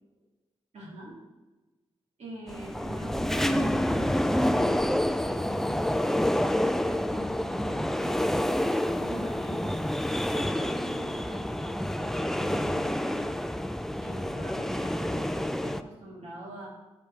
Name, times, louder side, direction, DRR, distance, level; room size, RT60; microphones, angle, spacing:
voice 1, 0.7-1.2 2.2-13.3 14.0-16.7, right 1 dB, 75° right, -3 dB, 2.5 m, -44 dB
sound 1, 2.5-15.8, left 1 dB, 5° left, 0.3 m, -28 dB
8.5 x 5.4 x 4.5 m, 1.2 s
cardioid pair, 80°, 11 cm